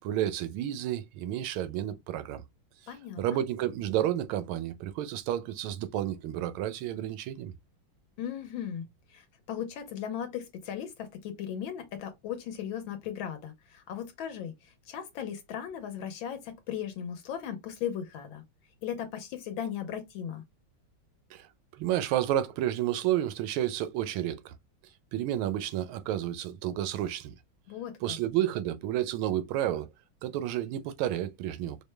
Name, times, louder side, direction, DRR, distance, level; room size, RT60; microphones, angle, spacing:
voice 1, 0.0-2.4 3.2-7.5 21.3-21.5 21.8-24.5 25.1-27.3 28.0-29.9 30.2-31.8, right 12 dB, 90° right, 1.4 m, -31 dB
voice 2, 2.9-3.4 8.2-18.4 18.8-20.4 27.7-28.2, left 9 dB, 80° left, 1.5 m, -37 dB
5.0 x 2.1 x 3.2 m
omnidirectional pair, 2.2 m